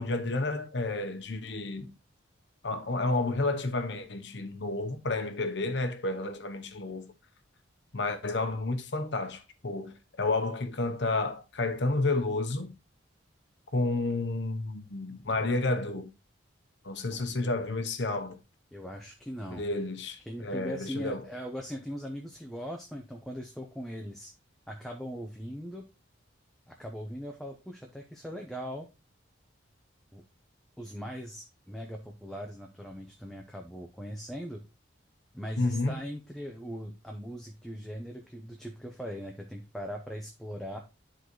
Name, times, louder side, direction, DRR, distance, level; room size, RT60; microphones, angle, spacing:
voice 1, 0.0-1.9 2.6-7.1 7.9-12.7 13.7-16.1 16.8-18.4 19.5-21.2 35.6-36.0, left 2 dB, 60° left, 0.9 m, -31 dB
voice 2, 17.1-17.4 18.7-19.7 20.3-24.3 24.7-25.9 26.7-28.9 30.1-30.2 30.8-34.6 35.3-40.8, equal, ahead, 0.7 m, -40 dB
11.0 x 4.0 x 3.1 m
head